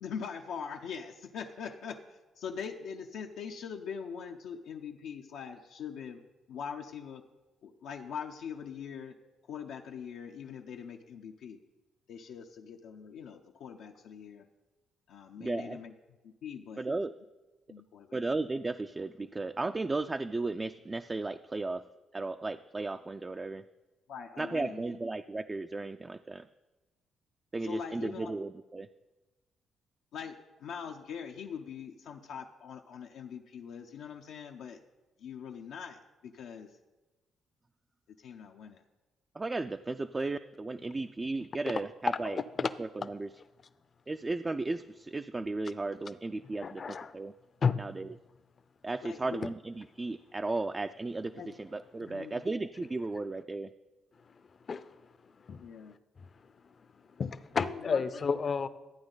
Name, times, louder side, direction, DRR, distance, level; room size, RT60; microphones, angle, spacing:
voice 1, 0.0-6.2 6.5-7.2 7.6-9.2 9.5-11.6 12.1-14.4 15.1-15.9 16.2-16.9 17.7-18.2 24.1-24.8 27.6-28.3 30.1-34.8 35.2-36.7 38.2-38.8 49.0-49.4 51.3-51.5 52.0-52.4 55.6-56.0 57.6-58.3, left 7 dB, 80° left, 2 dB, 0.6 m, -42 dB
voice 2, 15.4-15.8 16.8-17.1 18.1-21.8 22.1-23.6 24.4-26.5 27.5-28.9 39.4-42.4 42.8-43.3 44.1-46.8 47.1-47.3 47.8-48.1 48.8-53.7, right 3 dB, 25° right, 8 dB, 0.3 m, -35 dB
voice 3, 42.3-42.7 46.6-47.1 47.6-47.8 54.7-54.8 55.5-55.6 57.2-58.7, left 5 dB, 45° left, 14 dB, 0.6 m, -31 dB
13.0 x 8.8 x 3.9 m, 1.1 s
cardioid pair, 90°, 0 cm